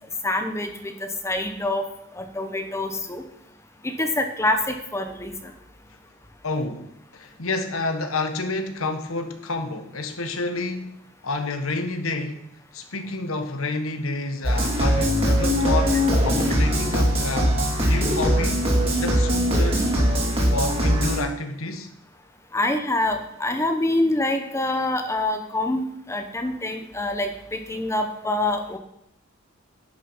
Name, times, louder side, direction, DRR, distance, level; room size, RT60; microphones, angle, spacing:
voice 1, 0.2-1.9 2.1-3.2 3.8-5.5 22.5-28.8, left 2 dB, 15° left, 6 dB, 0.9 m, -26 dB
voice 2, 6.4-10.9 11.2-18.7 19.0-19.8 20.4-21.9, left 2 dB, 90° left, 7 dB, 1.3 m, -29 dB
sound 1, 14.4-21.2, equal, 30° right, 2.8 m, -21 dB
11.0 x 6.1 x 5.7 m, 0.77 s
head